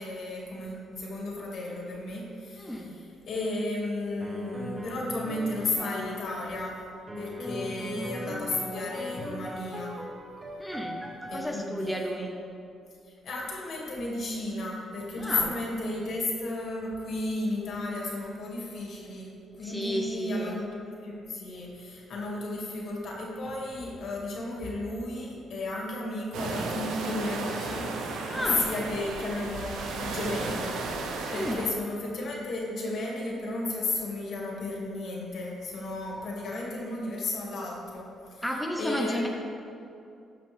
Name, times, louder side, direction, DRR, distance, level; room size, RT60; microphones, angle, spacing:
voice 1, 0.0-6.8 7.2-9.9 11.3-12.3 13.2-19.3 19.6-38.4 38.8-39.3, left 2 dB, 65° left, -3 dB, 2.2 m, -34 dB
voice 2, 2.6-3.0 7.9-8.5 10.6-11.0 11.3-12.3 15.2-15.5 19.6-20.6 28.3-28.6 31.3-31.6 38.4-39.3, equal, ahead, 0 dB, 0.9 m, -32 dB
sound 1, 4.2-6.3 7.1-11.4, left 1 dB, 25° right, 1.2 m, -38 dB
sound 2, 26.3-31.7, right 3 dB, 85° right, 0.9 m, -34 dB
13.5 x 5.8 x 3.5 m, 2.7 s
cardioid pair, 90°, 0 cm